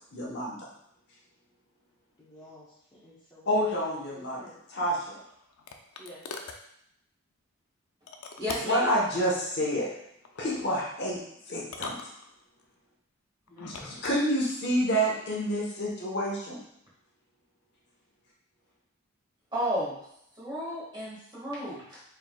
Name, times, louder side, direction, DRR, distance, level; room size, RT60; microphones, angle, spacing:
voice 1, 0.1-0.6 3.5-4.4 4.7-5.2 8.6-9.9 10.4-11.2 11.5-12.0 13.6-16.6, equal, 50° left, -4 dB, 1.0 m, -28 dB
voice 2, 2.2-4.6 6.0-6.2, equal, 15° left, -11 dB, 0.7 m, -51 dB
sound 1, 4.9-6.6 8.1-8.9 10.2-10.7 11.6-12.6 13.5-14.2, left 4 dB, 85° left, 0.5 m, -42 dB
voice 3, 8.4-8.9 13.5-13.9 19.5-20.0 20.4-22.0, equal, 20° right, -8 dB, 1.6 m, -33 dB
4.5 x 3.7 x 2.2 m, 0.74 s
head